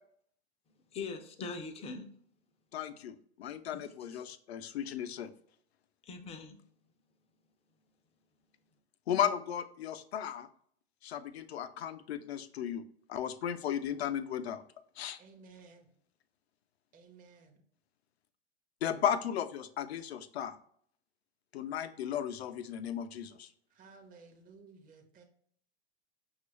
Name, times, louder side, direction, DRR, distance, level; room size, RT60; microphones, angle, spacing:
voice 1, 0.8-2.1 3.7-4.3 6.0-6.6, left 4 dB, 20° left, 0.5 m, -42 dB
voice 2, 2.7-5.3 9.1-10.5 11.0-12.8 13.1-14.6 15.0-15.2 18.8-20.6 21.5-23.5, left 9 dB, 70° left, 0.5 m, -35 dB
voice 3, 15.2-15.9 16.9-17.6 23.7-25.2, right 4 dB, 25° right, 0.8 m, -56 dB
5.9 x 2.4 x 3.0 m
hypercardioid pair, 95°, 33 cm